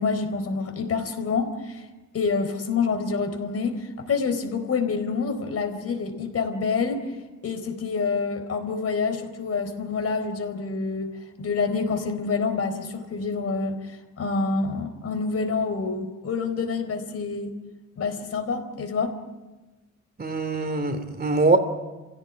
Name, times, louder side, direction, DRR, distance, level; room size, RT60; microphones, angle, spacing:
voice 1, 0.0-1.8 2.1-7.1 7.4-11.1 11.4-17.5 18.0-19.2, left 4 dB, 50° left, 6 dB, 4.2 m, -27 dB
voice 2, 20.2-21.6, right 3 dB, 30° right, 9 dB, 2.9 m, -22 dB
26.0 x 16.5 x 9.3 m, 1.2 s
cardioid pair, 90°, 30 cm